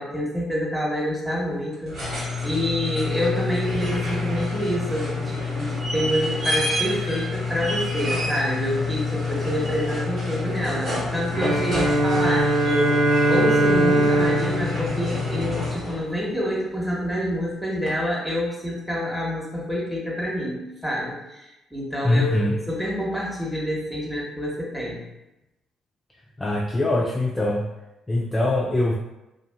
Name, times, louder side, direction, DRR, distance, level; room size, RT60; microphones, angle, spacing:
voice 1, 0.0-25.0, equal, ahead, -4 dB, 0.9 m, -27 dB
sound 1, 1.7-16.1 17.9-18.0, left 3 dB, 55° right, 1.1 m, -28 dB
Bowed string instrument, 11.3-16.0, right 1 dB, 80° right, 1.2 m, -22 dB
voice 2, 22.0-22.6 26.4-27.7 28.1-28.9, left 2 dB, 20° left, -2 dB, 0.3 m, -22 dB
2.5 x 2.4 x 2.2 m, 0.96 s
figure-of-eight pair, 45°, 0 cm